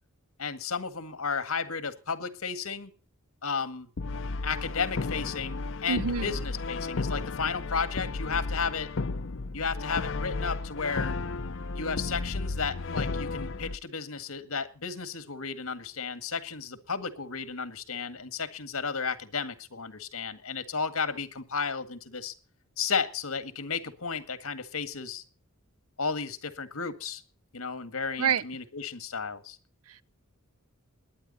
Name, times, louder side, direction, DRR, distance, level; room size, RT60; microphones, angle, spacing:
voice 1, 0.4-2.9 3.4-3.9 4.4-8.9 9.5-11.1 11.7-22.3 22.8-25.2 26.0-27.2 27.5-29.6, left 5 dB, 80° left, 1.8 m, -33 dB
Brass instrument, 4.0-13.8, left 3 dB, 60° left, 0.6 m, -33 dB
voice 2, 5.9-6.3 28.2-28.4 29.9-30.0, right 7 dB, 80° right, 0.7 m, -27 dB
21.0 x 10.0 x 4.1 m
head